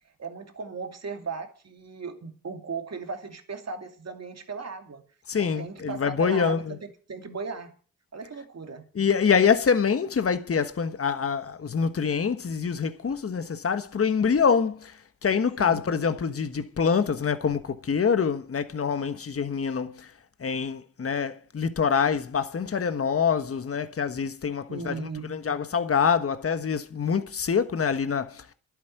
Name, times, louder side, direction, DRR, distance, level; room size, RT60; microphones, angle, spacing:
voice 1, 0.2-5.0 5.3-7.7 8.1-8.9 15.6-15.8 24.7-25.3, right 5 dB, 50° right, 2.6 m, -37 dB
voice 2, 5.3-6.8 9.0-14.9 15.2-20.1 20.4-28.4, left 6 dB, 40° left, 1.4 m, -25 dB
11.5 x 8.7 x 9.2 m
cardioid pair, 60°, 34 cm